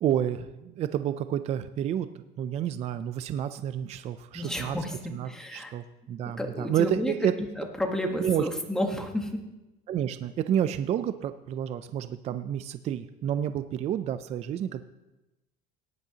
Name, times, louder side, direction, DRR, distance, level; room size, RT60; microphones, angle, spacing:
voice 1, 0.0-4.8 5.1-7.3 8.2-8.5 9.9-14.8, right 10 dB, 35° right, 11 dB, 0.4 m, -30 dB
voice 2, 4.3-5.0 5.2-5.7 6.2-7.1 7.6-9.4, left 1 dB, 5° left, 2 dB, 1.3 m, -31 dB
17.5 x 10.5 x 2.9 m, 1.0 s
cardioid pair, 150°, 19 cm